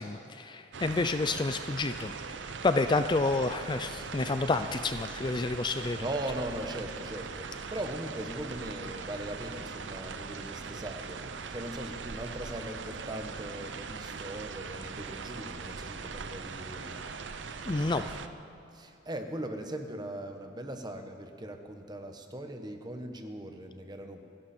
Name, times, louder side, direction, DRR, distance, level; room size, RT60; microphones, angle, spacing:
voice 1, 0.0-2.1 2.6-6.0 17.7-18.0, left 3 dB, 25° left, 9 dB, 0.4 m, -29 dB
sound 1, 0.7-18.3, right 5 dB, 85° right, 0.7 m, -41 dB
voice 2, 6.0-11.2 11.5-17.0 18.7-24.2, right 1 dB, 25° right, 5 dB, 1.2 m, -39 dB
28.0 x 11.5 x 4.4 m, 2.8 s
head